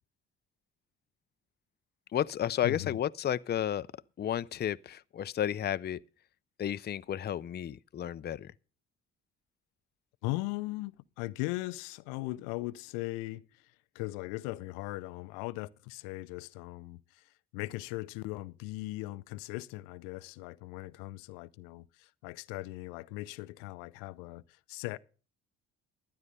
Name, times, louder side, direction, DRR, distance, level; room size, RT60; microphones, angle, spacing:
voice 1, 2.1-3.9 4.2-6.0 6.6-8.5, left 10 dB, 30° left, 0.5 m, -32 dB
voice 2, 2.6-3.0 10.2-25.0, left 20 dB, 80° left, 0.6 m, -39 dB
12.5 x 9.7 x 5.4 m
hypercardioid pair, 60°, 32 cm